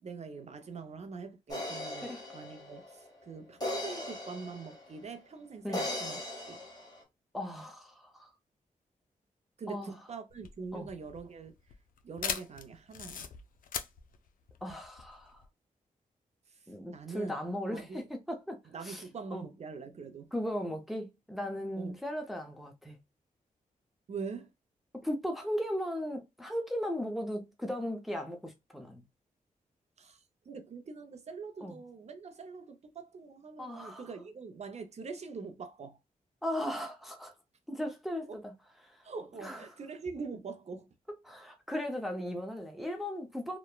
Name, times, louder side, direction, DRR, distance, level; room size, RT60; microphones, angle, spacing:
voice 1, 0.0-6.2 6.5-6.7 9.6-11.6 12.0-13.3 16.5-16.7 16.9-17.4 17.7-18.0 18.6-20.3 21.8-21.9 24.1-24.5 30.0-36.0 36.6-36.9 38.3-38.4 39.0-40.9, right 5 dB, 50° right, 0.5 m, -44 dB
sound 1, 1.5-5.0 5.7-7.0, left 2 dB, 30° left, 1.2 m, -39 dB
voice 2, 7.3-8.3 9.7-9.9 10.7-10.9 14.6-15.4 16.7-18.0 18.3-19.0 19.3-19.4 20.3-23.0 25.0-29.0 31.6-31.8 33.6-34.0 36.4-37.3 37.7-38.5 38.8-39.0 39.4-39.6 41.2-43.6, equal, ahead, 0.6 m, -37 dB
sound 2, 10.3-15.5, left 7 dB, 75° left, 0.4 m, -40 dB
2.9 x 2.1 x 2.2 m
cardioid pair, 80°, 14 cm